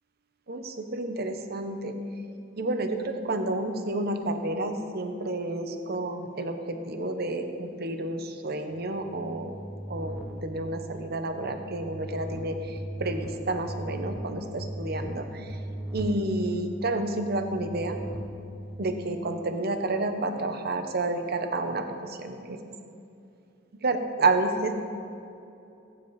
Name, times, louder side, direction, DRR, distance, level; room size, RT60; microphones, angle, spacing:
voice 1, 0.5-2.0 2.6-9.6 9.9-15.6 15.9-18.0 18.8-22.6 23.8-24.7, right 2 dB, 55° right, 7 dB, 1.0 m, -30 dB
sound 1, 8.9-19.5, right 1 dB, 5° right, 0.7 m, -39 dB
15.0 x 9.0 x 4.9 m, 2.7 s
head